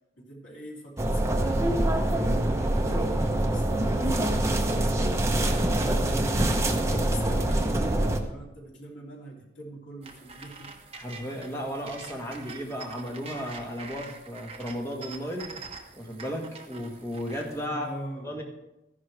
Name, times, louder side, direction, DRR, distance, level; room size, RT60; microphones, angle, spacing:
voice 1, 0.2-10.8 17.7-18.3, right 1 dB, 75° left, -3 dB, 3.1 m, -43 dB
sound 1, 1.0-8.2, right 1 dB, 15° right, 0.8 m, -25 dB
voice 2, 5.5-6.3 6.6-6.9 10.9-15.6 15.9-17.9 18.2-18.4, equal, 15° left, -1 dB, 1.6 m, -35 dB
sound 2, 10.0-17.7, right 4 dB, 30° right, 1.1 m, -45 dB
13.5 x 11.0 x 3.4 m, 0.91 s
head